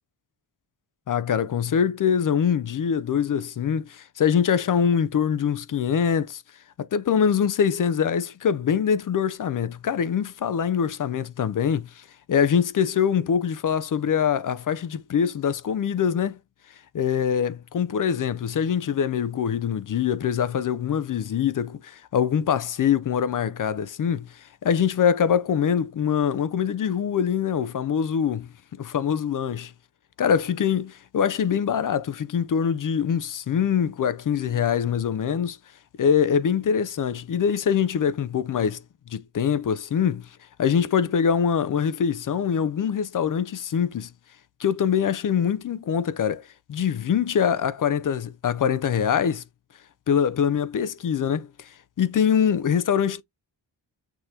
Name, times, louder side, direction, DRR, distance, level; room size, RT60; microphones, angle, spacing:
voice 1, 1.1-6.4 6.8-16.4 16.9-24.3 24.6-28.5 28.8-29.7 30.2-35.6 36.0-38.8 39.1-40.3 40.6-44.1 44.6-49.4 50.1-51.7 52.0-53.2, left 7 dB, 45° left, 0.5 m, -24 dB
6.8 x 2.9 x 2.7 m
cardioid pair, 70°, 46 cm